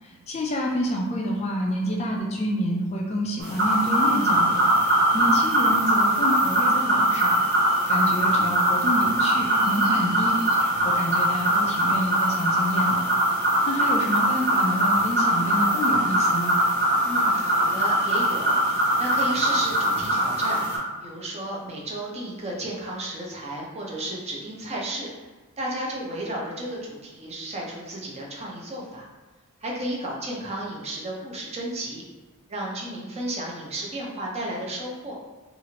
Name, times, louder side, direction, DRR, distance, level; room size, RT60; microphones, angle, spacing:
voice 1, 0.0-7.4 7.9-10.4 10.8-13.0 13.7-16.6, equal, 30° left, -1 dB, 0.3 m, -28 dB
sound 1, 3.4-20.8, right 1 dB, 45° right, 0.9 m, -22 dB
voice 2, 17.0-25.1 25.6-29.1 29.6-32.0 32.5-35.1, right 1 dB, 30° right, -2 dB, 0.6 m, -33 dB
2.9 x 2.4 x 2.8 m, 1.3 s
head